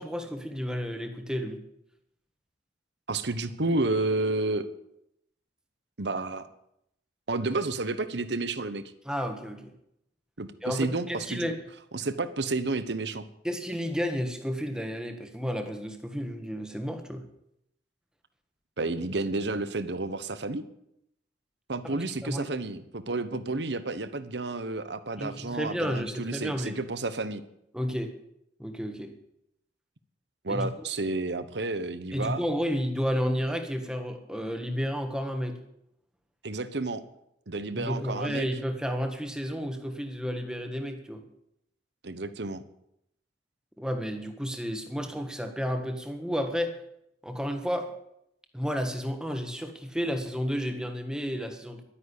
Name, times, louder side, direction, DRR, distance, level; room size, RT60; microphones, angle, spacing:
voice 1, 0.0-1.6 9.0-9.7 10.6-11.6 13.4-17.2 22.2-22.5 25.2-26.8 27.7-28.1 28.6-29.1 30.5-30.7 32.1-35.6 37.7-41.2 43.8-46.8 47.2-47.9 48.5-51.8, equal, 5° right, 5 dB, 1.5 m, -31 dB
voice 2, 3.1-4.7 6.0-6.5 7.3-8.8 10.4-11.5 11.9-13.3 18.8-20.6 21.7-27.4 30.4-32.4 36.4-37.0 37.5-38.5 42.0-42.6, right 2 dB, 70° right, 13 dB, 1.1 m, -31 dB
12.0 x 9.9 x 8.4 m, 0.78 s
head